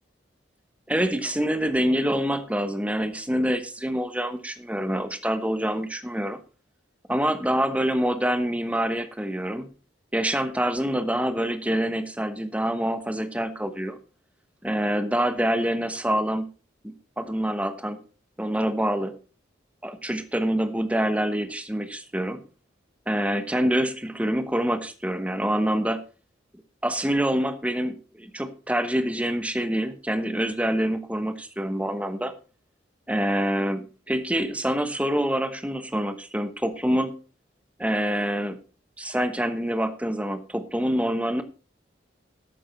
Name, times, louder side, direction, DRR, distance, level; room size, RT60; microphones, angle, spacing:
voice 1, 0.9-6.4 7.1-9.7 10.1-14.0 14.6-16.5 16.8-18.0 18.4-19.2 19.8-22.4 23.1-26.0 26.8-32.3 33.1-37.1 37.8-38.6 39.0-41.4, equal, 5° right, 10 dB, 1.0 m, -26 dB
12.0 x 8.7 x 4.5 m, 0.35 s
head